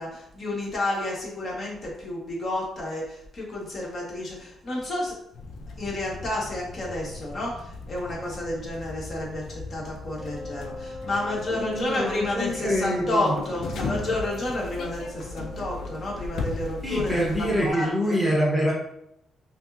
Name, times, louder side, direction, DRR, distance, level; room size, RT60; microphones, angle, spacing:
voice 1, 0.0-5.1 5.8-18.2, left 1 dB, 45° left, -4 dB, 1.3 m, -30 dB
sound 1, 5.3-17.7, left 3 dB, 65° left, 0.5 m, -37 dB
Wind instrument woodwind instrument, 10.2-16.8, left 2 dB, 40° right, 0.5 m, -40 dB
voice 2, 11.5-13.3 16.8-18.7, equal, 5° left, -5 dB, 0.9 m, -25 dB
5.1 x 2.0 x 2.6 m, 0.78 s
cardioid pair, 90°, 0 cm